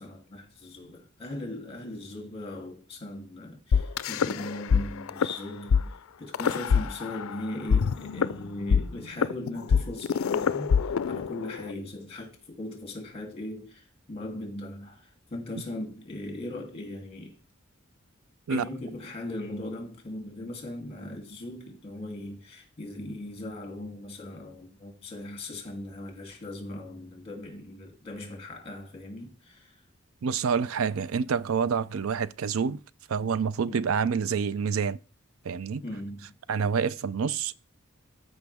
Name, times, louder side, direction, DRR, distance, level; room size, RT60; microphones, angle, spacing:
voice 1, 0.0-17.4 18.5-29.8 33.7-33.8 35.8-36.3, left 1 dB, 30° left, 2.9 m, -39 dB
sound 1, 3.7-4.8 5.1-5.3 5.7-5.8 6.3-7.3 7.7-11.7, left 6 dB, 90° left, 0.4 m, -24 dB
voice 2, 30.2-32.8 33.1-35.0 35.4-35.8 36.5-37.5, right 6 dB, 85° right, 0.4 m, -27 dB
14.0 x 5.4 x 3.5 m
head